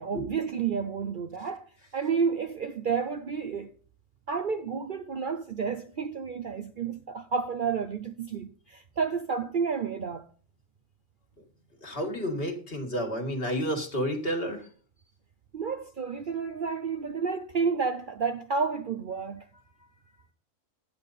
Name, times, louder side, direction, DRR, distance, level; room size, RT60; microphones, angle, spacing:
voice 1, 0.0-1.6 1.9-3.7 4.3-10.3 15.5-19.4, right 5 dB, 50° right, 0.7 m, -30 dB
voice 2, 11.8-14.6, equal, 45° left, 2.1 m, -30 dB
10.5 x 8.5 x 4.0 m
omnidirectional pair, 1.3 m